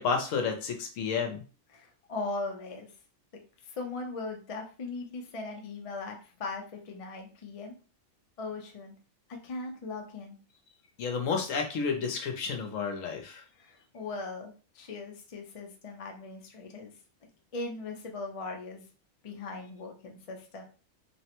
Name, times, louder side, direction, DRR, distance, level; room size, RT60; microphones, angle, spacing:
voice 1, 0.0-1.4 11.0-13.4, left 5 dB, 70° left, 3 dB, 1.0 m, -31 dB
voice 2, 1.7-2.9 3.6-7.7 8.4-8.9 9.4-10.4 13.6-16.9 17.5-18.9 19.2-20.6, left 3 dB, 55° left, 2 dB, 0.4 m, -39 dB
3.2 x 2.1 x 2.9 m, 0.36 s
omnidirectional pair, 1.5 m